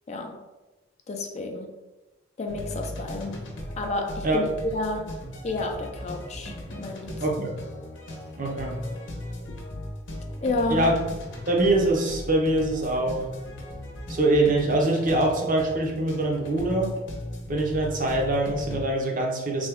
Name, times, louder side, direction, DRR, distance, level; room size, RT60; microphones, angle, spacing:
voice 1, 0.1-0.5 1.1-1.7 2.4-3.5 3.8-5.2 5.4-7.5 10.4-10.9, left 2 dB, 35° left, 3 dB, 0.4 m, -30 dB
sound 1, 2.5-18.8, left 1 dB, 85° left, 0.7 m, -37 dB
voice 2, 7.2-7.5 8.4-8.8 10.7-11.0 11.5-13.3 14.1-16.9 17.5-19.7, right 2 dB, 45° right, 0 dB, 0.7 m, -24 dB
3.4 x 2.2 x 3.4 m, 1.1 s
head